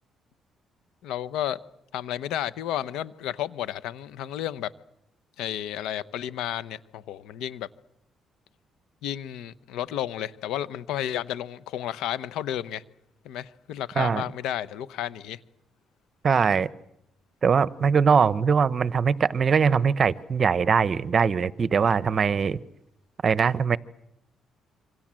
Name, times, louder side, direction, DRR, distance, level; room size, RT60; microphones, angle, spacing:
voice 1, 1.0-1.6 1.9-4.7 5.4-7.7 9.0-12.8 13.2-15.4, left 11 dB, 90° left, 1.0 m, -32 dB
voice 2, 16.2-16.7 17.4-22.6 23.2-23.8, right 6 dB, 45° right, 1.0 m, -22 dB
27.5 x 25.5 x 7.6 m
cardioid pair, 90°, 0 cm